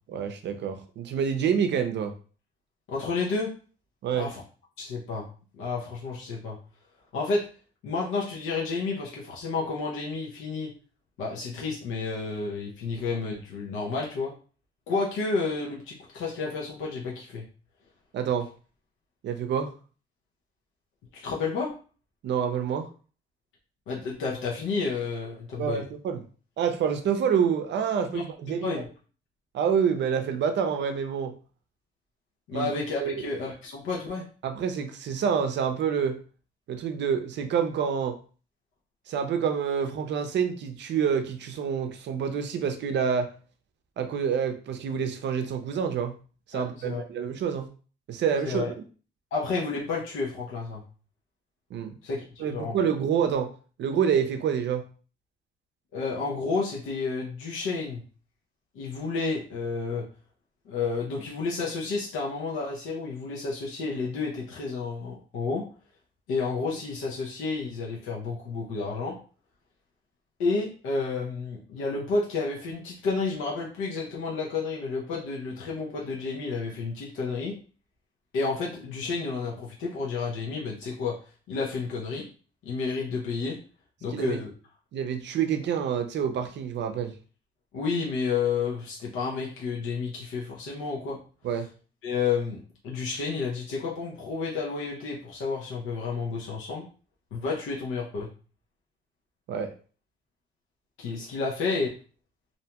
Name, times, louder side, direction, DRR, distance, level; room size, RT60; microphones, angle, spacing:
voice 1, 0.1-2.1 4.0-4.3 18.1-18.5 19.2-19.7 22.2-22.9 25.6-26.2 26.6-28.6 29.5-31.3 32.5-32.7 33.0-33.2 34.4-36.2 36.7-38.2 39.1-43.3 44.0-46.1 46.5-47.7 48.1-48.8 51.7-52.0 52.4-53.5 53.8-54.8 84.1-84.4 84.9-87.1 91.4-91.7 99.5-99.7, right 7 dB, 65° right, 6 dB, 0.5 m, -27 dB
voice 2, 2.9-3.5 4.1-4.4 4.8-5.3 5.6-6.6 7.1-7.5 7.8-10.7 11.2-14.3 14.9-17.5 21.1-21.8 23.9-25.8 28.1-28.9 32.5-34.2 46.5-47.0 48.4-48.7 49.3-50.8 52.0-52.8 55.9-58.0 58.7-60.1 60.7-65.6 66.3-69.2 70.4-77.6 78.3-81.2 81.5-82.3 82.6-83.6 84.0-84.5 87.7-91.2 92.0-96.9 97.3-98.3 101.0-101.9, left 4 dB, 90° left, -3 dB, 0.7 m, -31 dB
2.7 x 2.2 x 2.8 m, 0.38 s
cardioid pair, 90°, 20 cm